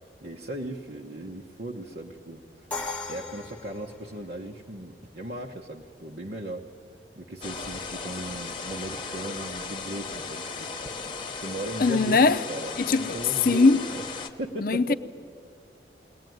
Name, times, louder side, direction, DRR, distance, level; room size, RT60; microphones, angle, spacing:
voice 1, 0.2-2.7 3.1-6.6 7.1-10.7 11.4-14.0 14.4-14.9, right 1 dB, 55° right, 1.1 m, -37 dB
Crash cymbal, 2.7-4.6, left 3 dB, 5° left, 1.3 m, -37 dB
sound 1, 7.4-14.3, left 4 dB, 25° left, 1.1 m, -36 dB
voice 2, 11.8-12.4 12.9-13.1 13.4-13.8 14.6-14.9, left 3 dB, 50° left, 0.6 m, -20 dB
21.0 x 18.5 x 9.3 m
head